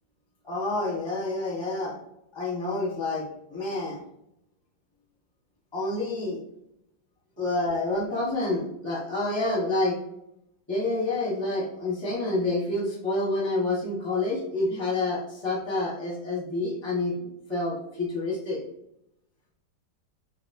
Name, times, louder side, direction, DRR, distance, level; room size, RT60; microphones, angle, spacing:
voice 1, 0.4-2.0 2.3-4.0 5.7-6.4 7.4-10.0 10.7-18.6, left 2 dB, 20° left, -4 dB, 1.0 m, -28 dB
4.2 x 2.6 x 2.6 m, 0.79 s
omnidirectional pair, 2.0 m